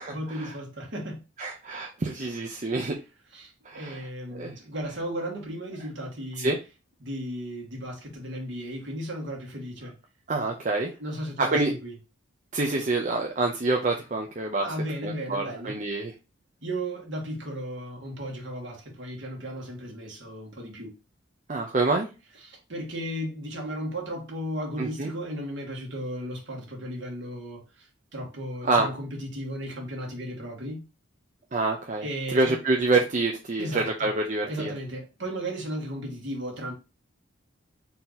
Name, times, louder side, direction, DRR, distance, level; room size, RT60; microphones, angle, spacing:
voice 1, 0.0-1.2 3.3-6.5 7.0-9.9 11.0-11.9 14.6-15.8 16.6-20.9 22.4-30.9 32.0-32.6 33.6-34.1 34.5-36.7, equal, 55° right, 1.6 m, -35 dB
voice 2, 1.4-3.0 3.7-4.0 4.3-4.5 6.4-6.6 10.3-10.9 11.4-11.7 12.5-14.7 15.0-16.1 21.5-22.1 24.8-25.1 28.6-28.9 31.5-32.0 32.3-34.7, right 3 dB, 35° right, 0.5 m, -26 dB
4.2 x 2.9 x 3.8 m
head